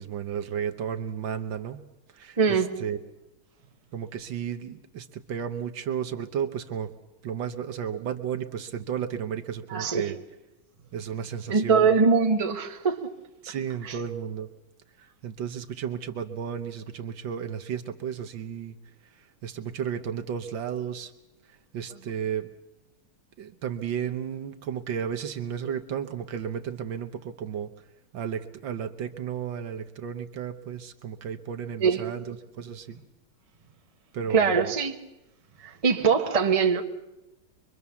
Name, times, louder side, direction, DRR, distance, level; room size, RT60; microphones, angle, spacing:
voice 1, 0.0-1.8 2.1-3.0 3.9-6.9 7.2-10.2 10.9-12.0 13.4-14.5 15.2-18.8 19.0-21.1 21.5-22.5 23.4-27.7 28.1-33.0 34.1-34.8, right 8 dB, 65° right, 1.7 m, -33 dB
voice 2, 2.4-2.7 9.7-10.1 11.5-13.1 31.8-32.0 34.3-34.9 35.6-36.8, right 5 dB, 20° right, 1.0 m, -22 dB
24.0 x 23.5 x 7.1 m
omnidirectional pair, 2.3 m